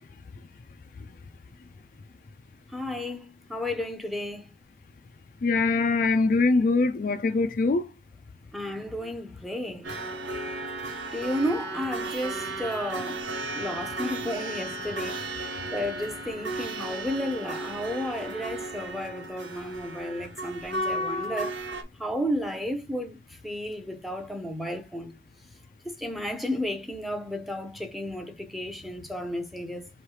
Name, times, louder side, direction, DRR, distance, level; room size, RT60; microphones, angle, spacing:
voice 1, 2.7-4.5 8.5-10.0 11.1-13.3 13.5-15.3 15.7-21.6 22.0-23.2 23.4-25.1 25.8-29.9, equal, ahead, 0.7 m, -33 dB
voice 2, 5.4-7.9, left 3 dB, 45° left, 0.3 m, -23 dB
sound 1, 9.8-21.8, right 2 dB, 90° right, 1.2 m, -34 dB
3.2 x 3.0 x 4.7 m
head